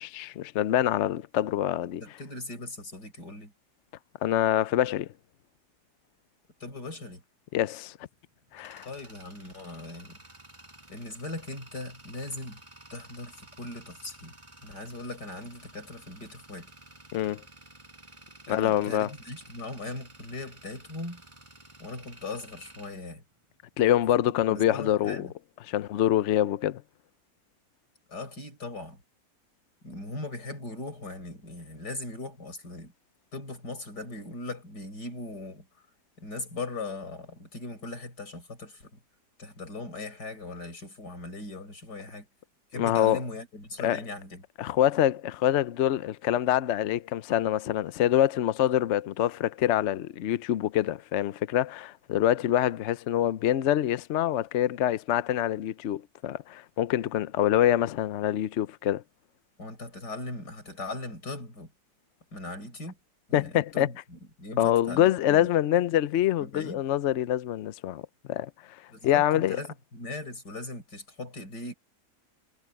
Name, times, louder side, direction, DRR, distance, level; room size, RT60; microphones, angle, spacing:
voice 1, 0.0-2.0 4.2-5.1 7.5-8.0 8.5-8.9 17.1-17.4 18.5-19.1 23.8-25.2 25.7-26.8 42.8-43.2 43.8-44.0 44.6-59.0 63.3-63.9 64.6-68.0 68.3-68.5 69.0-69.6, left 12 dB, 60° left, 0.7 m, -25 dB
voice 2, 2.0-3.5 6.6-7.2 8.9-10.2 10.9-12.6 12.9-14.3 14.6-16.7 18.5-21.2 21.8-23.2 24.5-25.3 28.1-29.0 29.8-32.9 33.3-35.7 36.2-38.9 39.4-42.3 42.7-44.4 59.6-61.7 62.3-63.0 63.3-65.5 66.4-66.8 68.9-71.7, left 2 dB, 85° left, 6.9 m, -39 dB
Tools, 8.2-23.9, right 1 dB, 20° right, 4.3 m, -52 dB
omnidirectional pair, 1.7 m